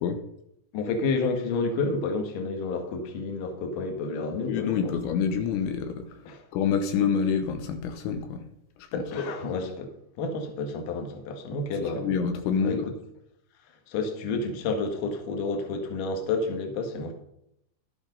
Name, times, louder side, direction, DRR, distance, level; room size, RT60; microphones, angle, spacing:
voice 1, 0.7-5.0 6.3-6.4 8.9-9.9 10.2-12.1 12.6-12.9 13.9-17.1, left 3 dB, 55° left, 4 dB, 2.6 m, -30 dB
voice 2, 4.5-6.1 6.5-8.4 8.9-9.0 12.0-12.9, left 6 dB, 80° left, 7 dB, 3.2 m, -27 dB
12.0 x 8.5 x 5.3 m, 0.77 s
omnidirectional pair, 5.5 m